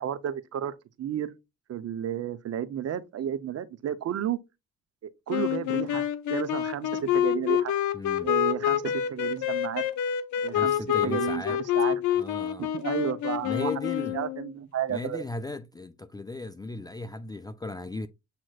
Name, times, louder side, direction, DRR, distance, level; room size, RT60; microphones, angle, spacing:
voice 1, 0.0-1.3 1.7-4.4 5.0-7.7 8.2-9.8 10.4-10.7 11.0-12.0 12.6-13.7 14.1-15.2, right 10 dB, 55° right, 0.7 m, -32 dB
sound 1, 5.3-14.5, left 11 dB, 75° left, 0.7 m, -27 dB
voice 2, 7.9-8.3 10.5-11.6 12.2-12.7 13.4-14.2 14.9-18.1, left 2 dB, 15° left, 0.3 m, -36 dB
7.6 x 2.9 x 2.3 m
cardioid pair, 90°, 30 cm